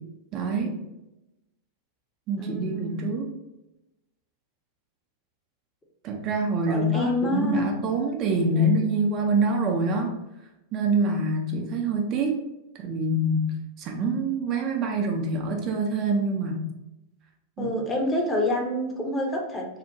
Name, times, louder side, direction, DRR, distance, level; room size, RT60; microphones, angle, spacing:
voice 1, 0.3-0.8 2.3-3.3 6.0-10.1 10.7-12.4 12.8-13.5 13.8-16.6 17.6-17.7, right 2 dB, 35° right, 2 dB, 0.4 m, -25 dB
voice 2, 2.4-3.0 6.7-7.7 8.5-8.7 17.6-19.6, left 1 dB, 15° left, 0 dB, 0.6 m, -27 dB
2.8 x 2.0 x 2.6 m, 0.93 s
figure-of-eight pair, 90°, 0 cm